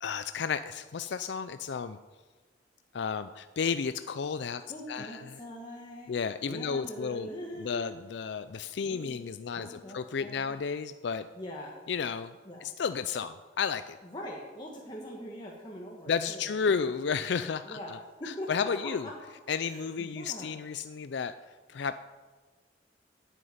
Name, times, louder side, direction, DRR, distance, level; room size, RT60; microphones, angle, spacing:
voice 1, 0.0-2.0 2.9-4.6 4.9-5.2 6.1-7.3 7.6-11.2 11.9-12.3 12.6-14.0 16.1-18.0 18.5-19.1 19.5-21.3 21.7-22.0, left 6 dB, 65° left, 11 dB, 0.4 m, -32 dB
voice 2, 4.7-6.1 6.4-8.0 8.8-10.6 11.3-11.7 12.4-12.7 14.0-16.9 17.6-19.1 19.6-20.5, equal, 25° left, -3 dB, 1.5 m, -42 dB
9.6 x 8.2 x 9.4 m, 1.4 s
head